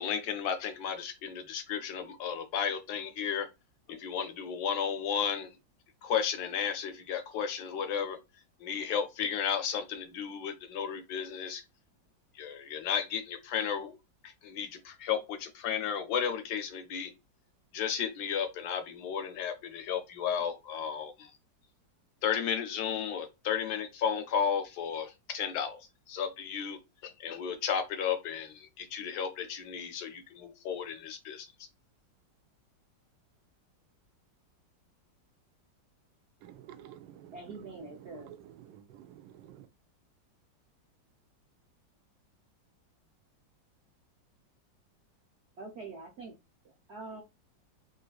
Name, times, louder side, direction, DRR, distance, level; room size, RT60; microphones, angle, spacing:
voice 1, 0.0-3.5 3.9-5.5 6.0-8.2 8.6-11.6 12.4-14.0 14.2-17.1 17.7-21.3 22.2-25.8 26.1-31.5, left 7 dB, 70° left, 1.0 m, -33 dB
voice 2, 36.4-39.7, right 11 dB, 90° right, 1.3 m, -51 dB
voice 3, 37.3-38.3 45.6-46.3 46.9-47.2, right 3 dB, 65° right, 0.6 m, -44 dB
3.9 x 2.6 x 2.3 m
omnidirectional pair, 2.0 m